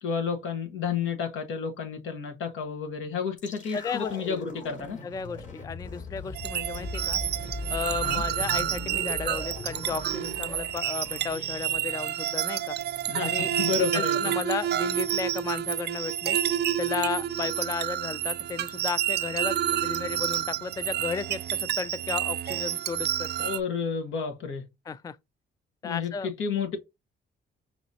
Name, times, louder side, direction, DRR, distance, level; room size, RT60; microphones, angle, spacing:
voice 1, 0.0-5.0 8.0-8.2 13.1-14.3 23.4-24.6 25.8-26.8, left 6 dB, 80° left, 1.4 m, -31 dB
sound 1, 3.4-13.5 13.8-13.9, left 2 dB, 40° left, 3.4 m, -40 dB
voice 2, 3.7-4.4 5.0-7.2 7.7-12.8 13.2-16.4 16.8-23.5 24.9-25.2 25.8-26.3, left 6 dB, 20° left, 0.3 m, -34 dB
sound 2, 6.3-23.6, right 11 dB, 55° right, 0.4 m, -29 dB
6.2 x 3.0 x 2.8 m
cardioid pair, 90°, 20 cm